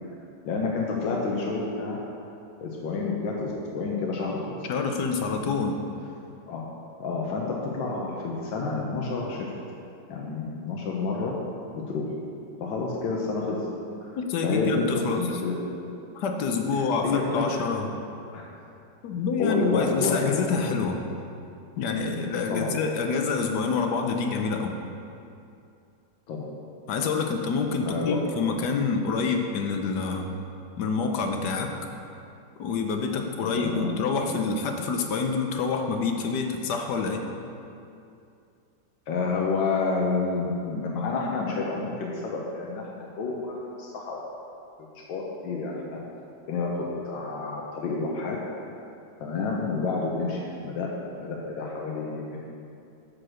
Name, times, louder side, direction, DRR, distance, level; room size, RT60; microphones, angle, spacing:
voice 1, 0.4-2.0 2.6-4.6 6.5-6.7 7.0-9.4 10.1-11.3 11.7-12.0 12.6-13.6 14.0-14.2 14.4-15.5 17.0-17.6 18.3-18.5 19.4-20.3 22.5-22.8 26.3-26.5 27.8-28.2 33.4-33.9 39.1-44.3 44.9-46.0 46.5-48.4 49.2-52.4, left 4 dB, 85° left, -2 dB, 1.6 m, -29 dB
voice 2, 4.7-5.8 14.2-15.3 16.1-17.9 19.0-21.0 21.8-24.7 26.9-30.3 30.8-31.7 32.6-37.2, left 4 dB, 70° left, 4 dB, 1.3 m, -27 dB
8.8 x 4.8 x 6.3 m, 2.6 s
omnidirectional pair, 2.0 m